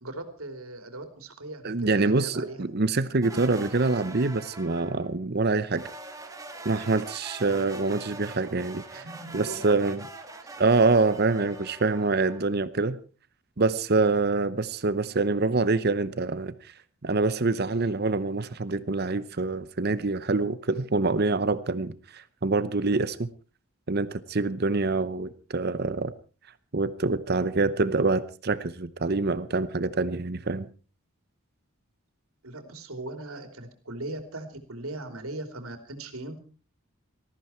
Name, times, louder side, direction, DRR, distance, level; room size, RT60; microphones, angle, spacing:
voice 1, 0.0-2.6 8.9-9.8 32.4-36.4, right 2 dB, 85° right, 7 dB, 3.2 m, -39 dB
voice 2, 1.6-5.8 6.6-9.0 9.3-10.1 10.6-13.0 13.6-16.7 17.0-23.3 23.9-26.1 26.7-30.7, right 3 dB, 50° right, 15 dB, 0.8 m, -25 dB
sound 1, 3.2-5.1 5.7-12.5, right 2 dB, 15° right, 2.0 m, -43 dB
19.5 x 14.5 x 4.4 m, 0.38 s
head